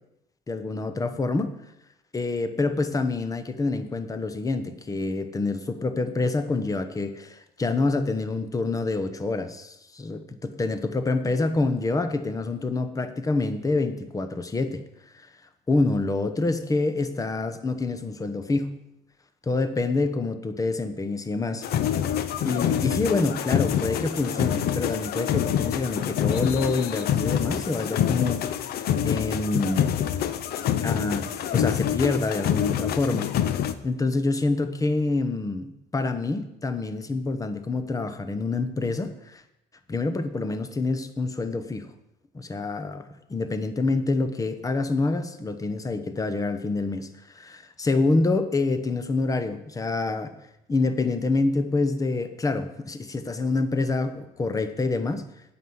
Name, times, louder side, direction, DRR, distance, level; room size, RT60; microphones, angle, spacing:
voice 1, 0.5-1.5 2.1-14.8 15.1-15.3 15.7-18.7 19.5-21.6 22.4-28.5 29.0-29.9 30.8-33.3 33.8-39.4 39.9-41.9 42.3-43.0 43.3-47.1 47.3-50.3 50.7-55.2, left 3 dB, 20° left, 10 dB, 0.9 m, -26 dB
sound 1, 21.6-33.7, left 9 dB, 70° left, 0.7 m, -26 dB
9.1 x 6.0 x 7.9 m, 0.86 s
cardioid pair, 110°, 17 cm